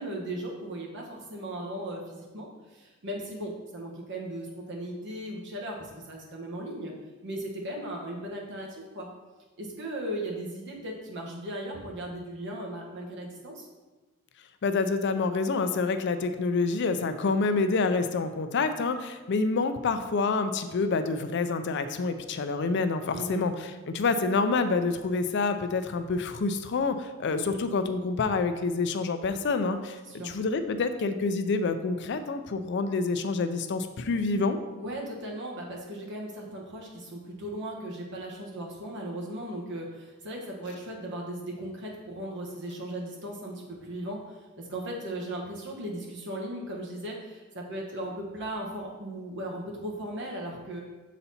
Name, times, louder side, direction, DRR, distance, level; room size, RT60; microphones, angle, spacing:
voice 1, 0.0-6.9 7.2-9.1 9.6-13.7 23.1-23.4 30.1-30.3 34.8-50.8, right 1 dB, 55° right, -1 dB, 1.3 m, -37 dB
voice 2, 14.6-30.0 30.2-34.6, left 4 dB, 55° left, 9 dB, 0.4 m, -27 dB
6.8 x 4.1 x 4.2 m, 1.2 s
head